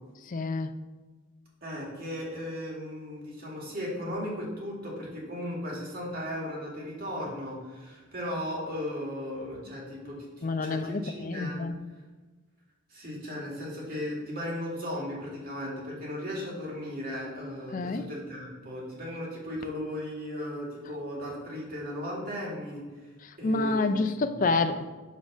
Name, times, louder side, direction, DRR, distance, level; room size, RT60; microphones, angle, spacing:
voice 1, 0.3-0.7 10.4-11.7 17.7-18.1 23.2-24.9, left 3 dB, 40° left, 9 dB, 0.4 m, -28 dB
voice 2, 1.6-11.6 12.9-24.4, left 1 dB, 45° right, -3 dB, 2.2 m, -36 dB
7.4 x 3.8 x 6.2 m, 1.3 s
head